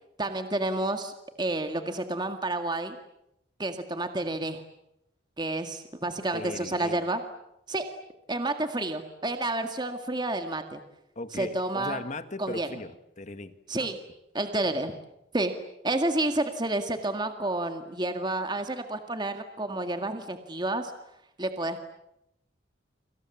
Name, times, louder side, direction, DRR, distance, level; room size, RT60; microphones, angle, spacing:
voice 1, 0.2-1.1 1.4-3.0 3.6-4.6 5.4-7.2 7.7-7.8 8.3-10.8 11.3-12.0 12.4-12.7 13.7-14.0 14.3-14.9 15.3-15.5 15.8-20.9 21.4-21.8, right 2 dB, 25° right, 7 dB, 1.9 m, -30 dB
voice 2, 6.3-7.0 11.2-13.9 14.4-14.5, left 2 dB, 40° left, 11 dB, 1.7 m, -38 dB
29.5 x 26.0 x 7.3 m, 0.83 s
head